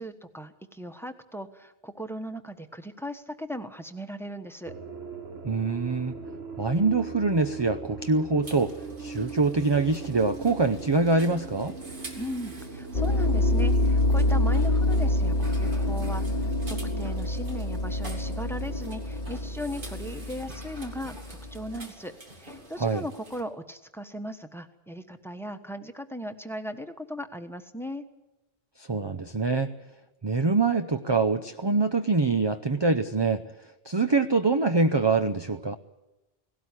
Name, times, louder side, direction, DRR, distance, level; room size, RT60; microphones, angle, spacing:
voice 1, 0.0-4.7 12.2-21.2 21.5-28.0, equal, ahead, 8 dB, 1.2 m, -38 dB
sound 1, 4.6-17.1, right 4 dB, 80° right, 1.8 m, -40 dB
voice 2, 5.4-6.2 6.6-11.8 22.8-23.0 28.8-29.7 30.2-33.4 33.8-35.8, right 3 dB, 30° right, 8 dB, 0.7 m, -24 dB
sound 2, 8.4-23.4, right 1 dB, 55° right, 2.8 m, -48 dB
sound 3, 12.9-21.7, left 1 dB, 45° left, 1.0 m, -26 dB
17.5 x 17.5 x 9.8 m, 0.99 s
omnidirectional pair, 1.0 m